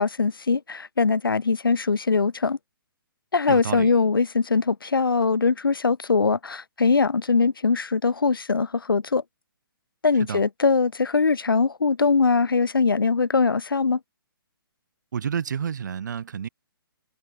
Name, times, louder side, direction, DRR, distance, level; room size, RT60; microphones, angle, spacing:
voice 1, 0.0-2.6 3.3-9.2 10.0-14.0, left 4 dB, 65° left, 5.1 m, -22 dB
voice 2, 3.5-3.9 10.3-10.4 15.1-16.5, right 7 dB, 50° right, 7.2 m, -29 dB
figure-of-eight pair, 130°, 12 cm